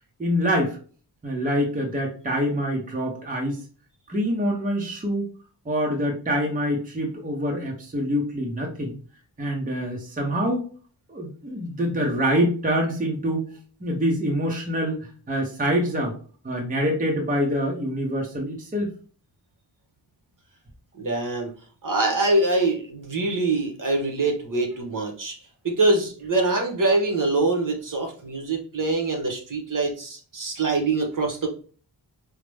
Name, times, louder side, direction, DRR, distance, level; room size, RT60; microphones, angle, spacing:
voice 1, 0.2-0.8 1.2-3.6 4.1-5.3 5.6-9.0 9.4-10.7 11.1-13.5 13.8-16.1 16.4-18.9, equal, 20° right, 0 dB, 0.7 m, -25 dB
voice 2, 20.9-21.5 21.8-25.4 25.6-31.5, right 2 dB, 50° right, 2 dB, 1.0 m, -24 dB
4.9 x 2.0 x 3.2 m, 0.41 s
wide cardioid pair, 160°, 43 cm